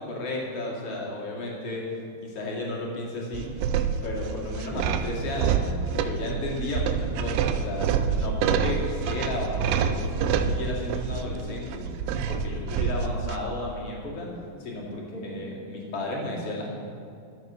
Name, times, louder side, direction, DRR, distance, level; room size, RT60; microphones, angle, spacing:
voice 1, 0.0-1.9 2.2-3.5 4.0-11.8 12.1-16.7, left 2 dB, 45° left, -3 dB, 2.9 m, -33 dB
sound 1, 3.3-13.4, right 7 dB, 85° right, 2.4 m, -27 dB
13.5 x 7.3 x 7.4 m, 2.5 s
omnidirectional pair, 4.4 m